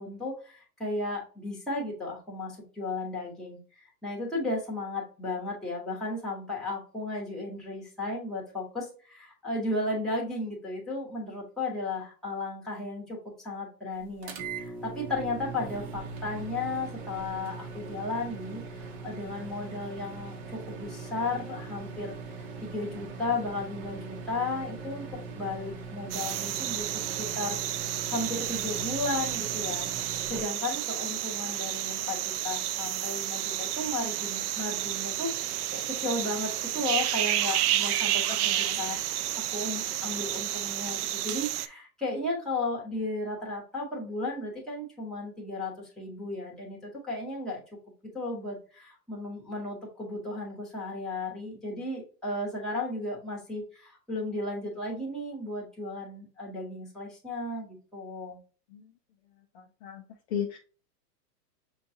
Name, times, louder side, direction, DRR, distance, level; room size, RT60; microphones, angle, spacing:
voice 1, 0.0-22.2 22.6-25.1 25.4-27.6 28.1-29.9 30.3-39.0 39.5-47.6 48.1-58.4, left 2 dB, ahead, -4 dB, 1.1 m, -34 dB
sound 1, 14.2-30.4, right 4 dB, 40° right, 0.8 m, -41 dB
sound 2, 26.1-41.7, right 13 dB, 70° right, 0.5 m, -31 dB
voice 2, 38.3-38.8 58.7-58.8 59.5-60.0 60.3-60.6, left 8 dB, 45° left, 2 dB, 0.5 m, -35 dB
6.6 x 2.3 x 2.7 m, 0.38 s
supercardioid pair, 155°, 49 cm